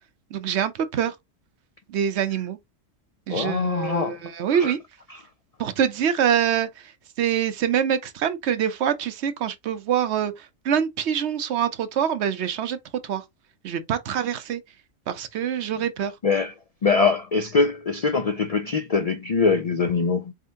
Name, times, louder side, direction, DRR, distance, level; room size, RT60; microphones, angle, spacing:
voice 1, 0.3-1.1 1.9-2.6 3.3-4.8 5.6-6.9 7.2-12.8 13.0-13.2 13.6-14.6 15.1-16.1, right 8 dB, 65° right, 0.9 m, -25 dB
voice 2, 3.3-4.2 4.6-4.7 16.2-16.5 16.8-20.3, left 4 dB, 80° left, 0.3 m, -23 dB
4.3 x 3.7 x 2.7 m
omnidirectional pair, 1.3 m